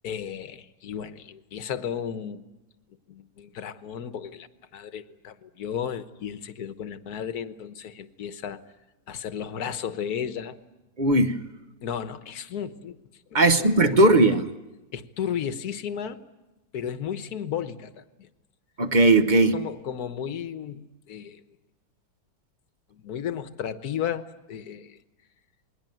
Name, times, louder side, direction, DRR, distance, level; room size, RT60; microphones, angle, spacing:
voice 1, 0.0-2.4 3.1-4.5 4.7-8.6 9.1-10.6 11.8-13.0 13.3-14.2 14.9-16.2 16.7-18.3 19.5-21.4 22.9-25.0, left 8 dB, 60° left, 11 dB, 1.6 m, -34 dB
voice 2, 11.0-11.4 13.3-14.5 18.8-19.5, right 2 dB, 35° right, 9 dB, 0.9 m, -18 dB
27.5 x 21.5 x 9.2 m, 1.0 s
omnidirectional pair, 2.0 m